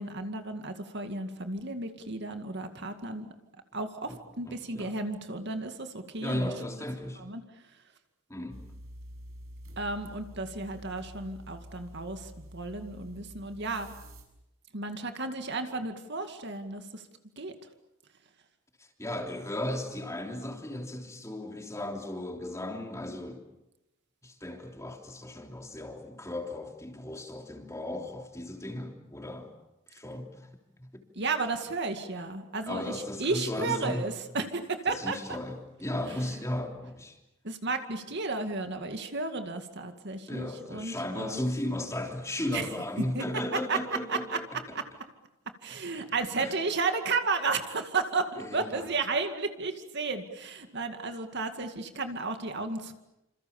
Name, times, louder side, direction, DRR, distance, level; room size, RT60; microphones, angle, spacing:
voice 1, 0.0-3.3 3.7-6.5 7.2-7.4 9.8-13.9 14.7-17.0 17.4-17.5 31.2-35.4 36.3-36.4 37.4-41.4 42.5-42.7 43.1-43.2 43.7-43.8 44.1-44.4 44.7-44.8 45.6-52.9, right 3 dB, 55° right, 7 dB, 2.2 m, -33 dB
voice 2, 4.5-4.9 6.2-7.2 8.3-8.6 18.8-23.4 24.2-29.5 29.9-30.5 30.8-31.0 32.7-34.1 34.9-37.2 40.3-44.8 46.4-46.5 48.4-48.8, left 1 dB, 15° left, 3 dB, 3.4 m, -36 dB
sound 1, 8.5-14.2, equal, 75° right, 6.7 m, -48 dB
27.5 x 27.5 x 7.2 m, 0.90 s
head